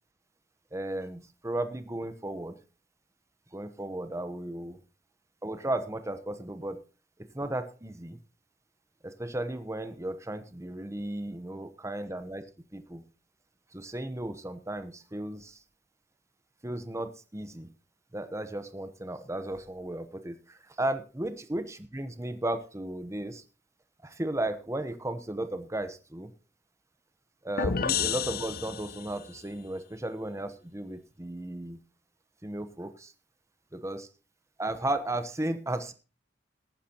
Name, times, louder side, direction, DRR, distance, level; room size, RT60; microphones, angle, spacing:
voice 1, 0.7-2.6 3.5-4.8 5.4-6.8 7.3-8.2 9.0-12.4 12.7-13.0 13.7-15.6 16.6-17.7 18.1-23.4 24.0-26.3 27.4-31.8 32.4-33.1 33.7-34.1 34.6-35.9, right 1 dB, 15° right, 10 dB, 1.0 m, -35 dB
sound 1, 27.6-29.3, left 6 dB, 55° left, 0.7 m, -30 dB
18.0 x 9.2 x 2.9 m, 0.33 s
head